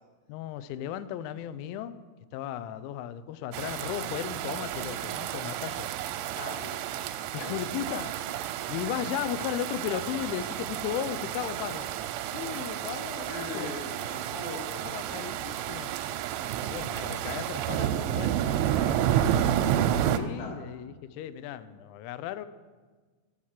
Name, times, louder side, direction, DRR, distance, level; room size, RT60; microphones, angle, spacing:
voice 1, 0.3-2.0 2.3-5.9 7.3-8.1 8.7-11.9 12.3-13.8 14.8-15.9 16.6-19.0 20.1-22.5, left 10 dB, 85° left, 13 dB, 2.7 m, -36 dB
sound 1, 3.5-20.2, right 11 dB, 85° right, 2.9 m, -31 dB
voice 2, 6.4-6.8 13.3-15.0 20.4-20.6, left 4 dB, 65° left, 0 dB, 3.5 m, -40 dB
10.0 x 6.4 x 7.3 m, 1.4 s
omnidirectional pair, 5.9 m